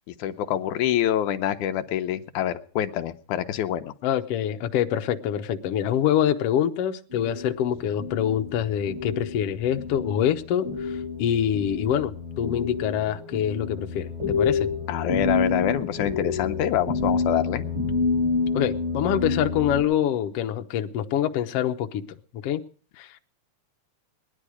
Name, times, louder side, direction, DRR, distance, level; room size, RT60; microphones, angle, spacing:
voice 1, 0.1-3.9 14.9-17.7, left 11 dB, 90° left, 8 dB, 2.3 m, -26 dB
voice 2, 4.0-12.1 12.4-14.7 18.5-22.0 22.4-22.6 23.0-23.1, left 10 dB, 65° left, 5 dB, 1.7 m, -25 dB
sound 1, 7.1-19.8, left 4 dB, 30° right, 5.3 m, -29 dB
20.0 x 11.0 x 4.9 m, 0.42 s
omnidirectional pair, 3.4 m